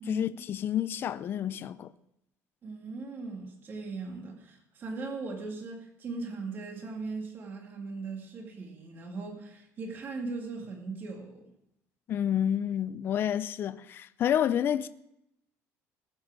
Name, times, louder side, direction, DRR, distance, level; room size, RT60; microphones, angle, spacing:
voice 1, 0.1-1.9 12.1-14.9, left 10 dB, 35° left, 0.5 m, -29 dB
voice 2, 2.6-11.5, right 3 dB, 35° right, 2.0 m, -39 dB
18.5 x 7.7 x 4.7 m
cardioid pair, 170°, 6 cm